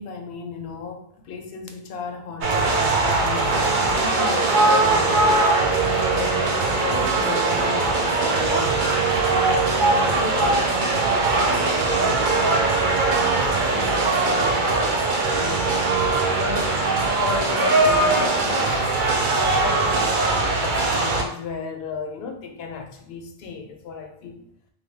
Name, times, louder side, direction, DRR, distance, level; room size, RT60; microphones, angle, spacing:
voice 1, 0.0-9.0 9.3-12.7 13.5-15.7 16.0-18.8 19.2-24.5, left 5 dB, 70° left, 4 dB, 0.8 m, -34 dB
sound 1, 2.4-21.2, right 3 dB, 60° right, 0.6 m, -21 dB
3.1 x 2.2 x 3.3 m, 0.70 s
omnidirectional pair, 1.1 m